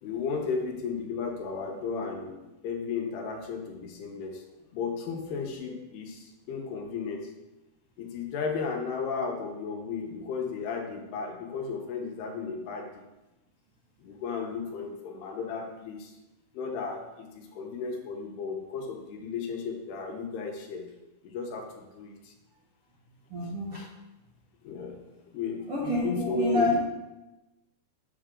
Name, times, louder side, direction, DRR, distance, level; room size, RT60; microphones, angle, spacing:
voice 1, 0.0-4.4 4.7-7.3 8.0-13.1 14.0-16.1 16.5-20.9 21.2-22.3 23.7-23.9 24.6-26.8, left 5 dB, 85° left, 2 dB, 3.1 m, -34 dB
voice 2, 23.3-23.8 25.7-26.7, left 2 dB, 55° right, -7 dB, 1.6 m, -28 dB
8.0 x 7.0 x 3.7 m, 1.0 s
omnidirectional pair, 4.5 m